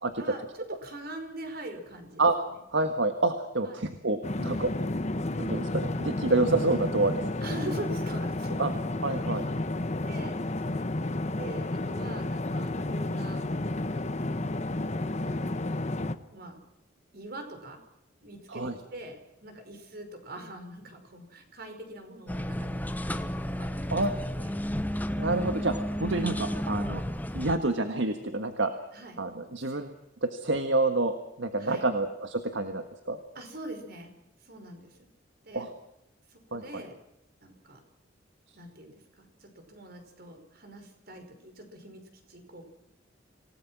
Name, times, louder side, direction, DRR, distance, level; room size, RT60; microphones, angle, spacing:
voice 1, 0.1-2.6 3.6-3.8 7.4-8.6 9.1-9.5 10.0-10.4 10.8-10.9 11.2-13.4 13.8-14.8 15.2-15.7 16.3-16.6 17.1-17.8 18.2-22.8 23.6-24.5 26.4-26.5 28.9-29.2 29.7-29.9 31.6-31.8 33.3-34.1 34.4-35.1 35.4-35.7 36.3-36.9 37.4-37.8 38.5-42.0 42.3-42.7, right 1 dB, 55° right, 6 dB, 5.1 m, -43 dB
voice 2, 2.7-4.7 5.4-7.2 8.6-8.7 9.0-9.4 18.5-18.7 23.9-24.1 25.2-25.7 26.0-27.0 27.3-28.7 29.2-29.9 30.2-33.2 35.5-35.7 36.5-36.8, right 2 dB, 75° right, 7 dB, 1.7 m, -28 dB
sound 1, 4.2-16.1, left 2 dB, 35° left, 1.1 m, -31 dB
sound 2, 22.3-27.6, equal, 10° left, 1.1 m, -32 dB
27.0 x 18.5 x 6.1 m, 0.86 s
head